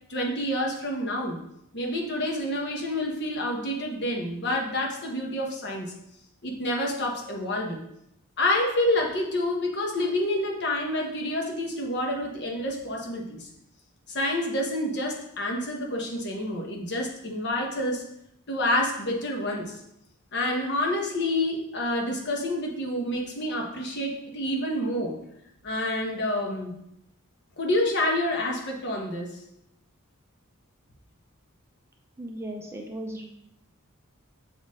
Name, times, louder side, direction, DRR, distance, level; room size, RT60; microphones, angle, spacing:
voice 1, 0.1-1.4 1.7-5.9 6.4-7.8 8.4-13.5 14.1-18.0 18.5-19.8 20.3-25.2 25.6-26.8 27.6-29.4, left 1 dB, 50° left, 1 dB, 1.1 m, -28 dB
voice 2, 32.2-33.3, right 1 dB, 10° right, 1 dB, 0.6 m, -36 dB
6.9 x 4.3 x 3.7 m, 0.79 s
head